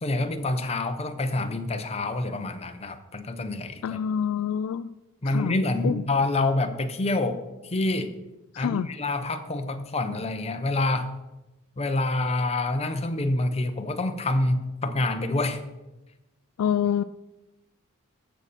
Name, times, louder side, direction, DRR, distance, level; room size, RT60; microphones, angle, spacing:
voice 1, 0.0-4.0 5.2-8.1 8.6-11.1 11.8-15.6, left 2 dB, 30° left, 7 dB, 0.8 m, -27 dB
voice 2, 3.8-4.9 5.2-5.6 5.8-6.0 8.5-8.9 16.6-17.0, left 8 dB, 70° left, 14 dB, 0.3 m, -26 dB
14.0 x 6.8 x 4.2 m, 1.0 s
head